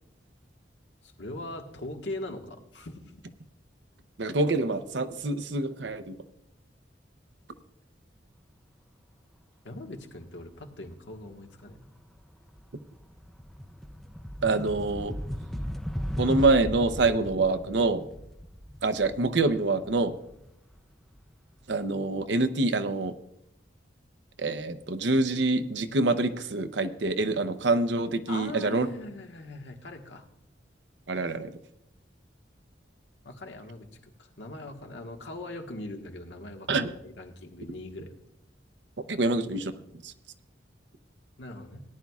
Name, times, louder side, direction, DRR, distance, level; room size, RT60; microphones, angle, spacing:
voice 1, 1.0-3.2 9.6-11.8 28.3-30.2 33.2-38.2 41.4-41.8, left 1 dB, 85° left, 3 dB, 1.5 m, -41 dB
voice 2, 4.2-6.2 14.4-15.1 16.2-18.0 18.8-20.1 21.7-23.1 24.4-28.9 31.1-31.5 36.7-36.9 39.1-39.7 40.0-40.1, right 2 dB, 75° right, 11 dB, 0.7 m, -26 dB
sound 1, 11.7-11.9 12.3-21.1, equal, ahead, 0.5 m, -37 dB
18.0 x 10.5 x 2.4 m, 0.82 s
head